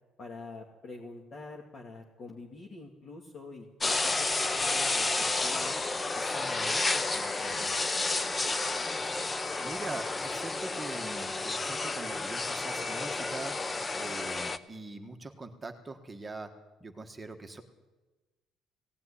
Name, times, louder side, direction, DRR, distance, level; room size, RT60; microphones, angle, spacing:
voice 1, 0.2-4.3 4.5-5.7 6.2-8.0, left 3 dB, 35° left, -1 dB, 2.3 m, -46 dB
sound 1, 3.8-14.6, left 3 dB, 15° left, 0.7 m, -31 dB
voice 2, 9.6-13.6 13.9-16.5 16.8-17.6, right 3 dB, 15° right, 5 dB, 1.5 m, -42 dB
18.5 x 17.0 x 9.9 m, 1.2 s
cardioid pair, 170°, 0 cm